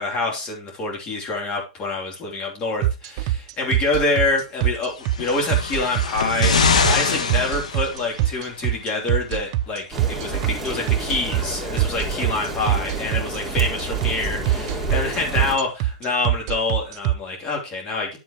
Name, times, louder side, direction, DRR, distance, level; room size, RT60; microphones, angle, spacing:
voice 1, 0.0-18.2, left 3 dB, 30° left, 0 dB, 3.1 m, -26 dB
sound 1, 2.8-17.1, right 14 dB, 50° right, 0.5 m, -22 dB
sound 2, 5.0-8.3 9.3-9.4, left 5 dB, 85° left, 1.7 m, -23 dB
sound 3, 9.9-15.6, right 2 dB, 10° right, 2.6 m, -30 dB
10.0 x 7.4 x 3.0 m, 0.29 s
hypercardioid pair, 120°, 4 cm